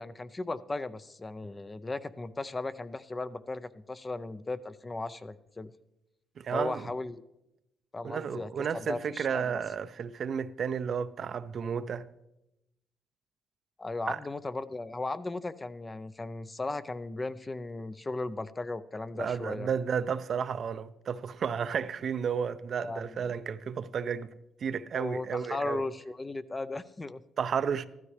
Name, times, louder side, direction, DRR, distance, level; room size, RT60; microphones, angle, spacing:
voice 1, 0.0-5.7 6.5-7.2 7.9-8.5 8.8-9.5 13.8-19.7 22.8-23.1 24.9-27.2, left 2 dB, 25° left, 0.5 m, -36 dB
voice 2, 6.4-6.9 8.0-12.0 14.1-14.2 19.2-24.3 24.6-25.8 27.4-27.9, right 7 dB, 55° right, 0.5 m, -32 dB
15.0 x 12.5 x 3.3 m
cardioid pair, 90°, 0 cm